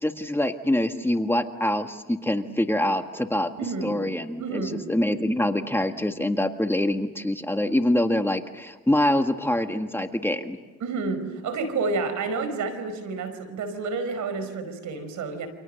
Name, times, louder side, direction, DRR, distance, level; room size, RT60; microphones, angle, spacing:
voice 1, 0.0-3.5 3.8-10.6, left 1 dB, 10° left, 5 dB, 1.7 m, -25 dB
voice 2, 3.6-3.9 4.4-4.8 10.8-15.5, right 4 dB, 75° right, 10 dB, 5.0 m, -29 dB
29.0 x 26.0 x 6.7 m, 1.2 s
cardioid pair, 90°, 30 cm